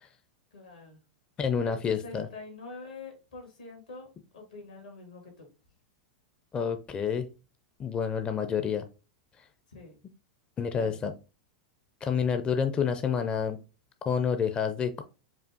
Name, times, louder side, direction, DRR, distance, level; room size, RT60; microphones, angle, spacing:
voice 1, 0.5-1.0 1.6-4.1 4.3-5.5 9.7-10.0 10.7-11.0, left 3 dB, 85° left, 2 dB, 1.9 m, -45 dB
voice 2, 1.4-2.3 6.5-7.3 7.8-8.8 10.6-11.1 12.0-13.6 14.1-15.0, left 7 dB, 25° left, 8 dB, 0.5 m, -28 dB
5.0 x 2.5 x 3.5 m, 0.31 s
hypercardioid pair, 95°, 4 cm